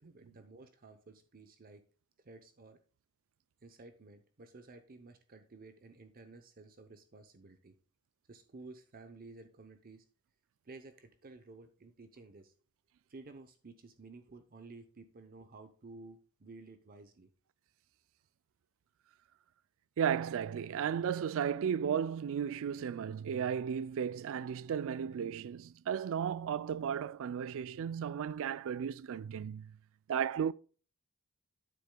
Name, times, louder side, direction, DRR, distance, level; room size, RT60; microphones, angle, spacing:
voice 1, 0.0-1.8 2.2-2.8 3.6-7.8 8.3-10.0 10.6-12.5 13.1-17.3, right 3 dB, 40° right, 0.7 m, -53 dB
voice 2, 20.0-29.7 30.1-30.5, right 8 dB, 60° right, 0.3 m, -34 dB
9.4 x 8.2 x 2.2 m
head